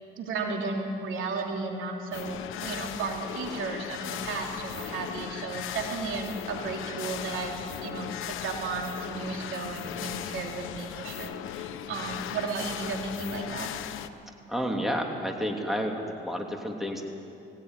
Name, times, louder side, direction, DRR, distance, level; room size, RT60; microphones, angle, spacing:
voice 1, 0.2-13.7, right 4 dB, 80° right, 1 dB, 3.2 m, -34 dB
sound 1, 2.1-14.1, left 11 dB, 85° left, 1.0 m, -37 dB
voice 2, 14.5-17.0, equal, ahead, 1 dB, 3.0 m, -30 dB
19.5 x 17.5 x 9.8 m, 2.7 s
cardioid pair, 90°, 20 cm